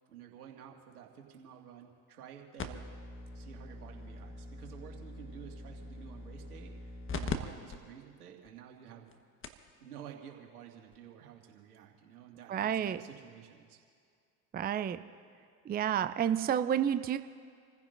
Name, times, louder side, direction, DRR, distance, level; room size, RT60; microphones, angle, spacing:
voice 1, 0.1-2.8 3.3-9.2 9.8-13.8, right 9 dB, 85° right, 1 dB, 2.2 m, -51 dB
sound 1, 2.6-7.4 7.7-7.8 8.5-8.6 9.1-9.2 9.4-9.7 10.9-11.0, left 3 dB, 30° left, 1.4 m, -41 dB
voice 2, 12.5-13.0 14.5-15.0 15.7-17.2, right 9 dB, 20° right, 11 dB, 0.5 m, -30 dB
28.5 x 15.0 x 2.6 m, 2.3 s
hypercardioid pair, 75°, 44 cm